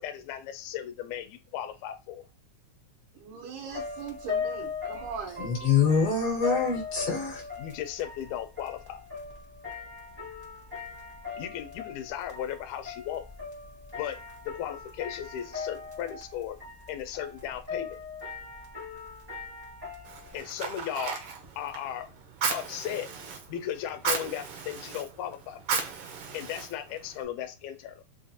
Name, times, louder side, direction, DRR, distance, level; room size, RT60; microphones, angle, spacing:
voice 1, 0.0-2.3 7.6-9.0 11.4-13.3 14.0-16.6 16.9-18.0 20.3-21.2 21.6-22.1 22.5-23.1 23.5-25.9 26.3-28.0, left 10 dB, 80° left, 1.9 m, -36 dB
voice 2, 3.1-5.5, right 6 dB, 85° right, 2.5 m, -40 dB
sound 1, 3.7-20.4, left 5 dB, 30° right, 0.4 m, -39 dB
voice 3, 5.4-7.4, left 6 dB, 65° left, 1.6 m, -25 dB
Fire, 20.0-27.2, right 5 dB, 70° right, 1.5 m, -35 dB
5.2 x 2.4 x 2.7 m
omnidirectional pair, 3.5 m